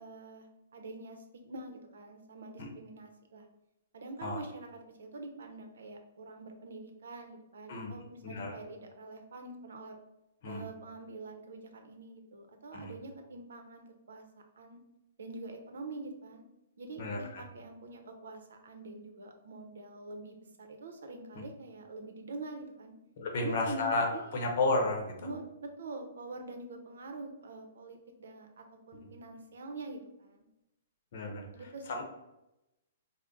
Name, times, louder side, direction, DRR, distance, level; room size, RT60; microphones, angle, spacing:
voice 1, 0.0-3.5 3.9-10.0 10.5-14.8 15.2-16.4 16.8-22.9 23.4-24.5 25.2-30.5 31.5-32.0, right 2 dB, 80° right, 5 dB, 0.7 m, -45 dB
voice 2, 8.2-8.6 10.4-10.7 12.7-13.0 17.0-17.4 23.2-24.1 24.3-25.1 31.1-31.5 31.9-32.0, left 2 dB, 50° left, 2 dB, 0.8 m, -32 dB
3.7 x 2.0 x 3.7 m, 0.92 s
hypercardioid pair, 165°, 0 cm